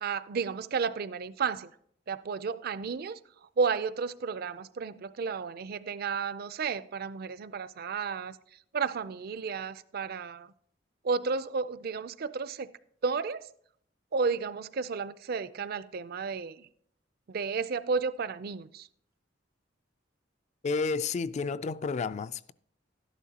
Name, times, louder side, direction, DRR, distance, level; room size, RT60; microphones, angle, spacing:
voice 1, 0.0-1.7 2.1-10.5 11.0-12.7 13.0-13.5 14.1-16.7 17.3-18.9, right 5 dB, 55° right, 0.4 m, -32 dB
voice 2, 20.6-22.5, left 4 dB, 40° left, 0.3 m, -31 dB
12.5 x 11.0 x 2.8 m
head